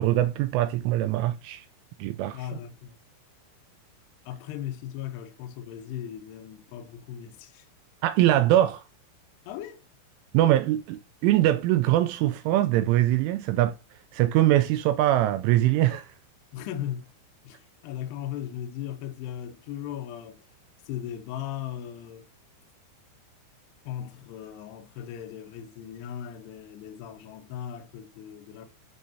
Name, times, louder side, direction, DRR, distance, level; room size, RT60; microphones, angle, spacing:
voice 1, 0.0-1.7 2.0-2.4 8.0-8.8 10.3-13.8 14.1-16.1, right 14 dB, 85° right, 2.8 m, -22 dB
voice 2, 2.3-3.0 4.3-7.7 9.5-9.8 16.5-17.1 17.4-20.5 20.8-22.3 23.8-28.7, left 10 dB, 80° left, 2.4 m, -37 dB
12.5 x 4.8 x 2.8 m
omnidirectional pair, 6.0 m